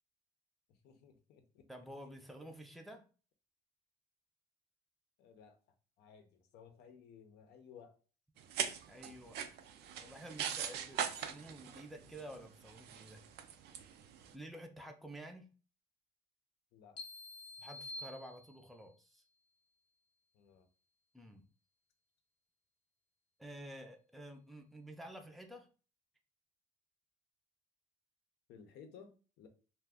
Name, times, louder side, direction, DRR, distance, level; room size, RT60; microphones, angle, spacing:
voice 1, 0.7-1.7 5.2-5.6 6.0-8.0 16.7-17.0 20.3-20.7 28.5-29.5, left 7 dB, 80° left, 6 dB, 0.6 m, -58 dB
voice 2, 1.7-3.0 8.9-9.4 10.0-13.2 14.3-15.5 17.6-19.2 21.1-21.4 23.4-25.7, right 1 dB, ahead, 4 dB, 0.4 m, -50 dB
sound 1, 8.4-14.3, right 8 dB, 80° right, 0.4 m, -42 dB
sound 2, 17.0-18.9, left 1 dB, 30° left, 0.8 m, -48 dB
2.4 x 2.1 x 3.4 m, 0.36 s
cardioid pair, 110°, 17 cm